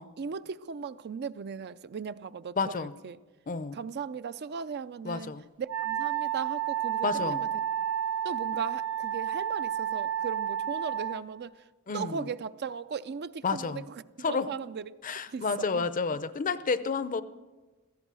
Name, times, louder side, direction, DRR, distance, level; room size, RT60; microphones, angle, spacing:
voice 1, 0.2-3.2 3.7-7.5 8.2-11.5 11.9-13.9 14.3-14.8 15.3-15.4 15.7-15.9, right 6 dB, 50° right, 0.4 m, -37 dB
voice 2, 2.6-2.9 3.5-3.8 5.0-5.4 7.0-7.4 11.9-12.3 13.4-13.8 14.2-14.5 15.0-17.2, left 4 dB, 40° left, 0.6 m, -30 dB
Wind instrument woodwind instrument, 5.7-11.2, right 10 dB, 90° right, 1.4 m, -31 dB
16.5 x 14.0 x 6.2 m
head